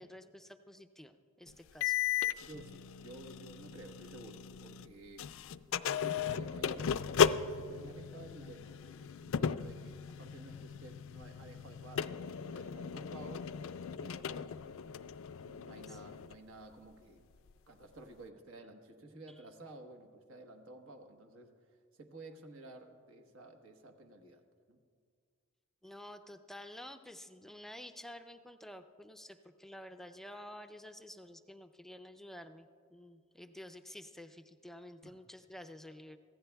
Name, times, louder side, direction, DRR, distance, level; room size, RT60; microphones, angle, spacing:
voice 1, 0.0-2.0 15.6-16.0 25.8-36.2, left 1 dB, ahead, 8 dB, 0.4 m, -50 dB
sound 1, 1.8-4.9 5.2-16.3, left 7 dB, 70° left, 0.4 m, -36 dB
voice 2, 2.4-5.3 5.8-13.5 14.0-14.5 15.4-17.2 17.7-21.5 21.9-24.4 24.7-24.8 35.0-35.1, right 2 dB, 70° right, 4 dB, 1.2 m, -53 dB
24.0 x 16.0 x 2.3 m, 2.1 s
head